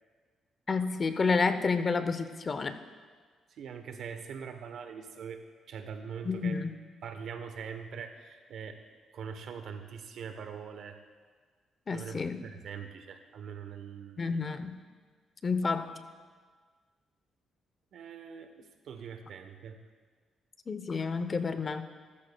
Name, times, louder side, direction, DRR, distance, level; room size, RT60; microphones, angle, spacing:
voice 1, 0.7-2.8 6.2-6.8 11.9-12.4 14.2-14.8 15.4-15.9 20.7-21.9, left 4 dB, 35° left, 10 dB, 0.7 m, -30 dB
voice 2, 3.5-6.6 7.0-8.8 9.1-11.0 11.9-14.4 17.9-19.9, right 6 dB, 70° right, 7 dB, 1.0 m, -43 dB
14.5 x 13.5 x 2.3 m, 1.5 s
cardioid pair, 90°, 0 cm